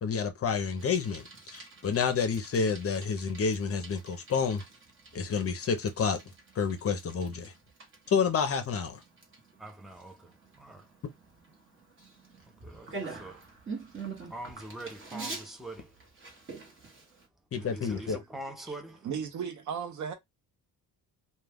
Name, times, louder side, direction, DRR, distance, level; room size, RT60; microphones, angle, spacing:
voice 1, 0.0-4.6 5.1-6.2 6.6-7.5 8.1-9.0 17.5-18.2, left 6 dB, 40° left, 0.6 m, -29 dB
Bicycle, 0.8-17.3, right 4 dB, 35° right, 1.0 m, -46 dB
voice 2, 9.6-11.0 12.4-13.5 14.3-16.0 17.5-19.1, right 1 dB, ahead, 0.5 m, -44 dB
voice 3, 19.0-20.1, right 7 dB, 55° right, 0.7 m, -35 dB
2.2 x 2.2 x 3.3 m
cardioid pair, 110°, 36 cm